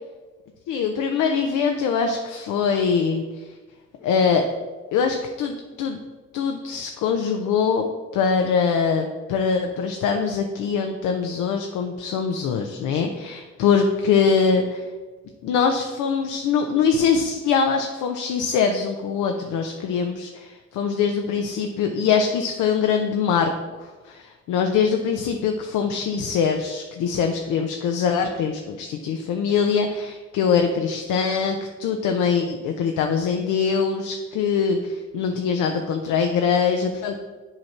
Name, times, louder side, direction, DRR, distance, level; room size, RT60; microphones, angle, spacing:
voice 1, 0.7-3.4 4.0-4.5 4.9-6.0 6.3-7.9 8.1-14.8 15.4-23.5 23.8-37.2, left 6 dB, 85° left, 4 dB, 0.6 m, -23 dB
7.8 x 2.9 x 5.7 m, 1.3 s
cardioid pair, 90°, 30 cm